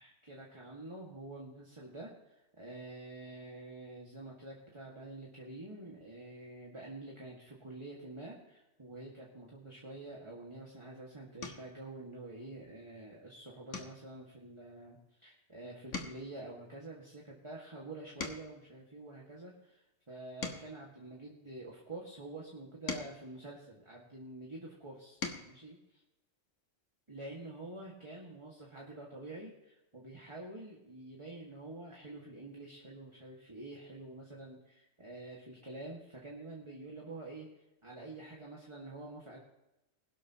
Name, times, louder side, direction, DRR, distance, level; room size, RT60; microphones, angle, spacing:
voice 1, 0.0-25.2 25.5-25.8 27.1-37.5 37.8-39.4, right 2 dB, 25° right, -3 dB, 2.1 m, -47 dB
sound 1, 10.5-10.8 11.4-11.8 12.3-12.7 13.0-13.2 13.7-15.5 15.8-18.7 19.3-21.8 22.5-24.3 24.8-25.6 27.0-27.1 27.4-27.5, left 4 dB, 75° left, 1.8 m, -46 dB
21.0 x 12.0 x 3.0 m, 0.93 s
omnidirectional pair, 1.3 m